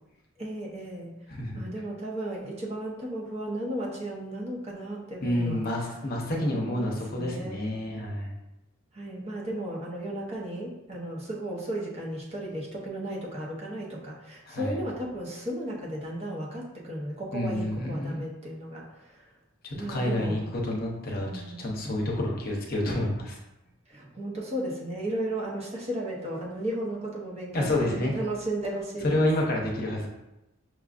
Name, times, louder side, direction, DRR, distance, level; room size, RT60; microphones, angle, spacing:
voice 1, 0.4-1.1 1.5-5.6 6.3-7.6 8.9-19.3 19.7-20.4 21.2-21.6 23.9-29.3, right 1 dB, 30° right, -3 dB, 0.8 m, -35 dB
voice 2, 1.3-1.6 5.2-8.3 14.5-14.8 17.3-18.2 19.6-23.4 27.5-28.1 29.0-30.1, left 1 dB, 50° left, -1 dB, 0.7 m, -29 dB
6.0 x 2.4 x 2.4 m, 0.93 s
head